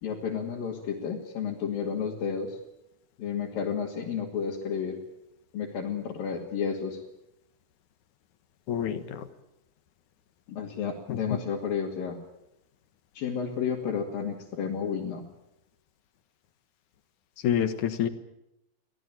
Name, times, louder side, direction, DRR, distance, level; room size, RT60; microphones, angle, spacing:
voice 1, 0.0-2.6 3.2-5.0 5.5-7.0 10.5-12.2 13.1-15.2, left 7 dB, 90° left, -2 dB, 4.3 m, -31 dB
voice 2, 8.7-9.3 11.1-11.4 17.4-18.1, left 9 dB, 65° left, 11 dB, 2.7 m, -28 dB
24.0 x 17.0 x 9.2 m, 0.88 s
omnidirectional pair, 3.9 m